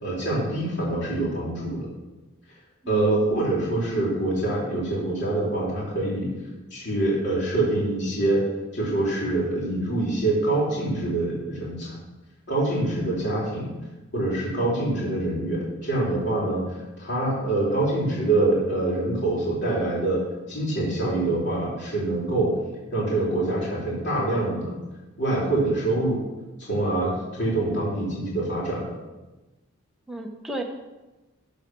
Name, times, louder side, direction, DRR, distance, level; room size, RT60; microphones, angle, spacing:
voice 1, 0.0-1.9 2.9-6.3 6.7-8.4 8.7-12.0 12.5-13.7 14.1-20.2 20.5-22.5 22.9-24.8 25.2-26.2 26.7-28.9, right 2 dB, 55° left, -5 dB, 3.4 m, -25 dB
voice 2, 2.8-3.2 30.1-30.6, right 1 dB, ahead, 1 dB, 1.1 m, -32 dB
13.0 x 4.8 x 6.0 m, 1.1 s
head